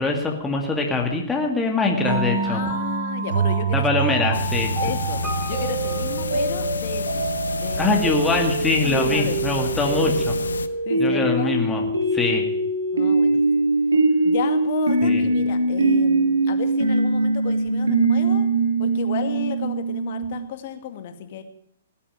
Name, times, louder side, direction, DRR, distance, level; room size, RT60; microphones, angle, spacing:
voice 1, 0.0-2.6 3.7-4.7 7.8-10.1 11.0-11.8 12.1-12.5 15.0-15.2, left 3 dB, 10° left, 1 dB, 2.3 m, -23 dB
sound 1, 1.9-20.4, right 3 dB, 75° right, 6.6 m, -23 dB
voice 2, 2.4-3.9 4.3-4.4 4.8-5.2 5.5-7.2 7.5-8.0 8.8-9.4 10.0-10.2 10.9-11.6 12.9-13.6 14.2-18.5 18.8-21.4, left 9 dB, 50° left, 8 dB, 2.2 m, -33 dB
sound 2, 4.3-10.7, left 5 dB, 80° left, 0.9 m, -29 dB
Piano, 5.2-7.3 7.5-7.6, left 1 dB, 10° right, 3.7 m, -39 dB
18.0 x 8.6 x 9.1 m, 0.69 s
hypercardioid pair, 120°, 0 cm